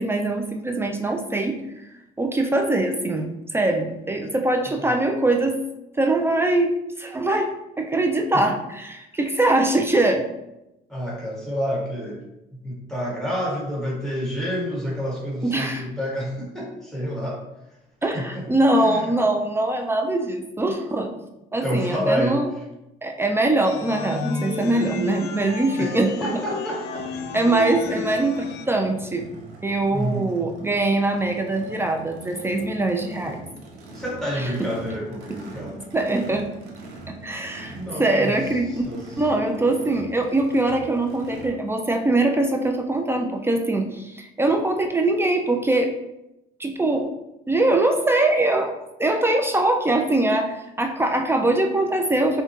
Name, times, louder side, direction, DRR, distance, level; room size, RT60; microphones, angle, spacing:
voice 1, 0.0-1.6 2.2-5.6 5.9-10.3 15.4-15.9 18.0-21.2 21.5-22.5 23.0-26.4 27.3-29.3 29.6-33.4 34.4-34.5 35.9-36.5 37.1-38.9 39.2-45.9 46.6-47.1 47.5-48.7 49.0-52.4, right 2 dB, 15° right, 4 dB, 0.4 m, -22 dB
voice 2, 10.9-12.2 12.6-17.4 18.1-18.5 18.8-19.1 21.6-22.4 25.8-27.3 27.8-28.0 29.9-30.3 33.9-35.8 37.7-38.3 38.7-39.8, equal, 5° left, -4 dB, 1.5 m, -29 dB
sound 1, 23.6-28.7, left 5 dB, 75° left, 0.4 m, -32 dB
Race car auto racing / Idling / Accelerating revving vroom, 27.0-41.5, right 2 dB, 90° right, 0.8 m, -42 dB
5.6 x 2.2 x 3.0 m, 0.91 s
cardioid pair, 110°, 17 cm